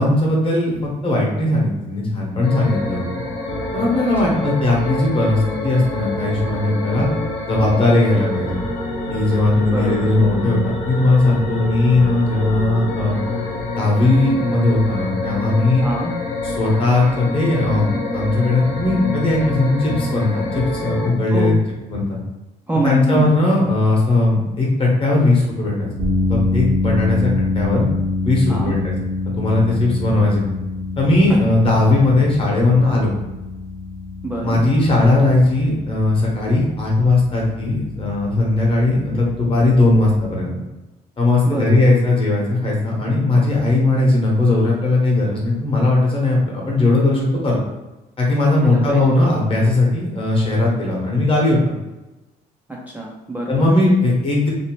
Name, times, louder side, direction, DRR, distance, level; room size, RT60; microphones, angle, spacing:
voice 1, 0.0-3.0 3.7-7.1 7.5-8.6 9.1-13.2 13.7-15.8 16.4-21.6 21.9-22.2 22.8-25.9 26.3-27.8 28.2-28.9 29.4-30.4 31.0-33.1 34.4-40.5 41.2-47.6 48.2-51.7 53.5-54.5, left 2 dB, 30° left, -3 dB, 1.0 m, -18 dB
sound 1, 2.4-21.1, left 2 dB, 85° left, 1.0 m, -27 dB
voice 2, 3.9-4.4 9.7-10.1 15.8-16.1 21.3-21.6 22.7-23.3 28.5-28.8 34.2-34.6 41.4-41.7 48.6-49.2 52.7-53.7, right 2 dB, 10° right, -3 dB, 0.4 m, -25 dB
sound 2, 26.0-40.3, left 3 dB, 70° right, 0.7 m, -26 dB
2.7 x 2.0 x 2.9 m, 1.1 s
cardioid pair, 110°, 17 cm